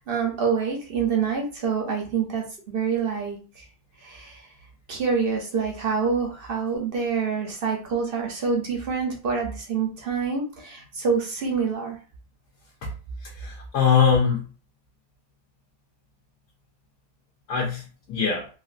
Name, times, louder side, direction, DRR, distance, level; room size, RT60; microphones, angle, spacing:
voice 1, 0.0-3.7 4.0-4.5 4.9-12.0, right 5 dB, 50° right, 0 dB, 0.7 m, -26 dB
voice 2, 13.2-14.4 17.5-18.5, left 6 dB, 70° left, -1 dB, 1.3 m, -22 dB
3.4 x 2.3 x 2.5 m, 0.36 s
omnidirectional pair, 1.8 m